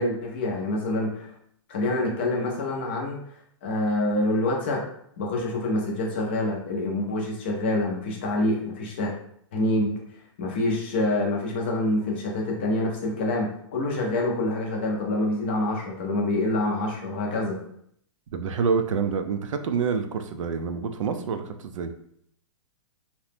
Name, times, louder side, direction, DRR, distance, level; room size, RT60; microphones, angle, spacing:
voice 1, 0.0-1.3 1.7-3.2 3.6-4.8 5.2-9.1 9.5-10.0 10.4-17.6, left 2 dB, 20° left, -1 dB, 0.4 m, -26 dB
voice 2, 18.3-21.9, right 5 dB, 80° right, 8 dB, 0.4 m, -27 dB
2.8 x 2.0 x 3.2 m, 0.67 s
hypercardioid pair, 180°, 16 cm